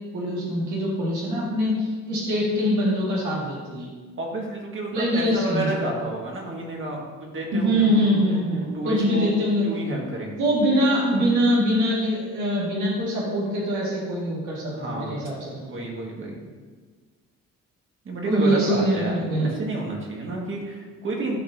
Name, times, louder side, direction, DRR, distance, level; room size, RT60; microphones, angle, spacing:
voice 1, 0.1-3.9 4.9-5.7 7.5-9.6 10.0-10.1 10.4-15.7 18.2-19.5, equal, 75° right, -6 dB, 1.9 m, -23 dB
voice 2, 4.2-8.4 8.7-9.4 9.6-10.5 14.7-16.4 18.0-21.4, right 2 dB, 40° right, -1 dB, 1.8 m, -31 dB
12.0 x 4.2 x 2.7 m, 1.4 s
cardioid pair, 90°, 30 cm